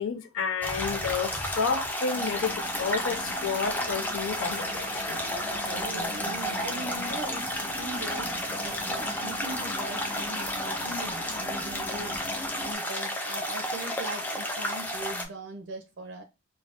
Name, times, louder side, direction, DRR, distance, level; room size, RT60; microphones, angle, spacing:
voice 1, 0.0-5.3, left 5 dB, 80° left, 0.5 m, -31 dB
sound 1, 0.6-15.2, equal, 10° left, 0.4 m, -32 dB
sound 2, 2.1-12.7, left 1 dB, 50° left, 0.8 m, -42 dB
voice 2, 5.3-12.1 12.6-16.2, right 2 dB, 65° right, 0.5 m, -40 dB
2.5 x 2.2 x 3.3 m
head